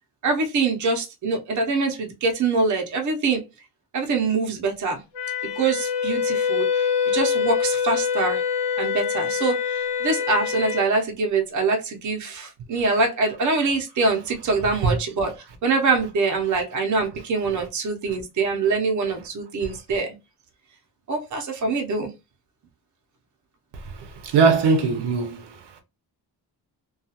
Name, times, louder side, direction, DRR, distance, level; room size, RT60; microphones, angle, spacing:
voice 1, 0.2-3.4 3.9-5.0 5.4-8.4 8.8-15.3 15.6-20.2 21.1-22.1, right 3 dB, 45° right, 0.7 m, -24 dB
Wind instrument woodwind instrument, 5.1-10.9, left 7 dB, 85° left, 0.7 m, -25 dB
voice 2, 24.2-25.4, right 5 dB, 80° right, 0.6 m, -19 dB
2.3 x 2.3 x 2.7 m
wide cardioid pair, 145°, 40 cm